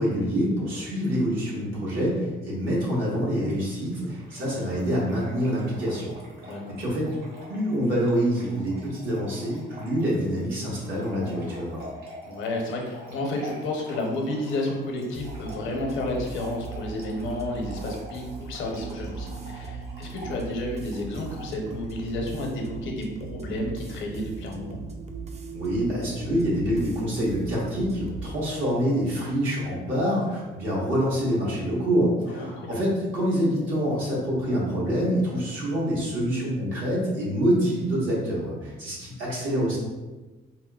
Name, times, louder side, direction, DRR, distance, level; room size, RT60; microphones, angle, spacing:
voice 1, 0.0-6.1 6.4-7.2 7.5-11.9 25.5-39.8, equal, 80° right, -6 dB, 1.2 m, -26 dB
Trickle dribble / Fill (with liquid), 3.4-21.9, equal, 55° right, 1.1 m, -46 dB
voice 2, 12.3-24.8 32.3-32.8, left 1 dB, 75° left, 1 dB, 0.6 m, -31 dB
sound 1, 15.1-28.3, right 4 dB, 35° right, 0.3 m, -39 dB
4.1 x 2.0 x 2.2 m, 1.2 s
cardioid pair, 90°, 20 cm